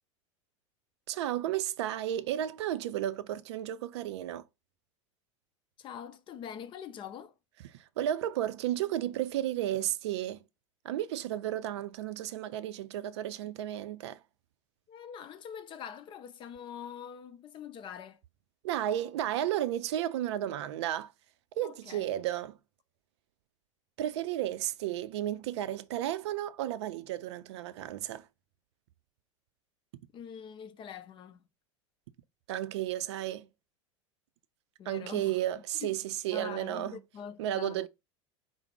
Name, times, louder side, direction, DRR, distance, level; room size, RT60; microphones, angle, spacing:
voice 1, 1.1-4.5 7.7-10.4 10.8-14.2 18.6-21.1 21.6-22.6 24.0-28.3 32.5-33.5 34.9-37.0 37.4-37.9, right 12 dB, 60° right, 0.4 m, -33 dB
voice 2, 5.8-7.3 14.9-18.2 21.6-22.1 30.1-31.5 34.8-35.4 35.8-35.9 36.3-37.8, left 8 dB, 30° left, 0.5 m, -44 dB
4.9 x 2.0 x 4.7 m
figure-of-eight pair, 80°, 16 cm